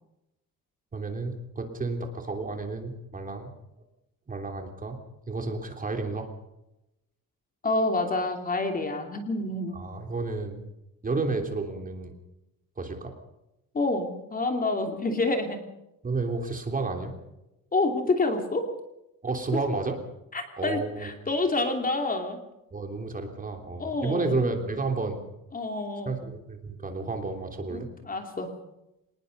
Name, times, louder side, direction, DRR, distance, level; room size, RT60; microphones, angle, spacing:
voice 1, 0.9-3.5 4.3-5.0 5.3-6.3 9.7-10.6 11.0-12.1 12.8-13.1 16.0-17.1 19.2-20.0 20.6-21.1 22.7-25.2 26.0-27.9, right 3 dB, 25° right, 4 dB, 3.3 m, -31 dB
voice 2, 7.6-9.8 13.7-15.6 17.7-18.7 20.3-22.4 23.8-24.3 25.5-26.2 27.7-28.5, left 2 dB, 25° left, 4 dB, 2.9 m, -28 dB
26.0 x 20.0 x 5.3 m, 0.90 s
cardioid pair, 150°, 34 cm